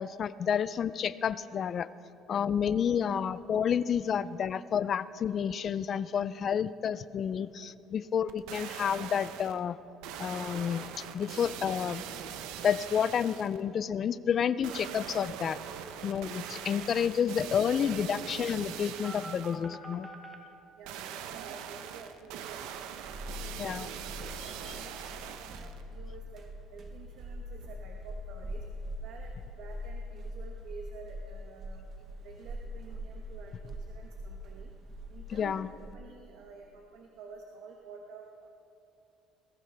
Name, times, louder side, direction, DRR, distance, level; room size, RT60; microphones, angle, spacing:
voice 1, 0.0-1.9 2.3-9.8 10.2-12.0 12.6-15.6 16.0-20.1 23.6-23.9 24.4-24.7 35.3-35.7, left 8 dB, 35° left, 16 dB, 0.4 m, -30 dB
sound 1, 8.3-9.6 10.0-13.6 14.6-19.6 20.9-25.8 26.3-26.4, right 9 dB, 85° right, 0.8 m, -42 dB
sound 2, 15.8-20.4, right 5 dB, 15° right, 1.2 m, -48 dB
voice 2, 20.7-22.9 23.4-23.9 24.4-26.4 26.7-28.6 29.0-31.9 32.2-34.7 35.1-35.6 35.9-38.5, right 5 dB, 65° right, 2 dB, 1.2 m, -50 dB
sound 3, 22.5-35.9, left 1 dB, 35° right, 1.0 m, -43 dB
20.0 x 15.5 x 3.4 m, 2.8 s
cardioid pair, 150°, 0 cm